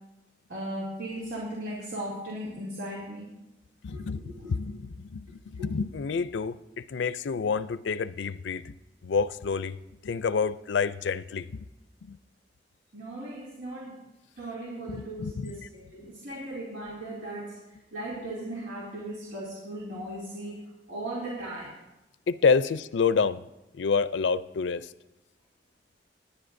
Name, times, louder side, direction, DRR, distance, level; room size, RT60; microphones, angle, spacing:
voice 1, 0.5-3.3 3.9-4.6 5.6-5.7 12.9-14.0 14.4-17.6 17.9-21.7, right 1 dB, 85° right, 2.8 m, -37 dB
voice 2, 3.8-8.7 9.0-11.5 12.0-12.2 14.9-15.6 22.3-23.4 23.7-24.9, left 5 dB, 90° left, 0.4 m, -28 dB
19.5 x 10.5 x 2.7 m
head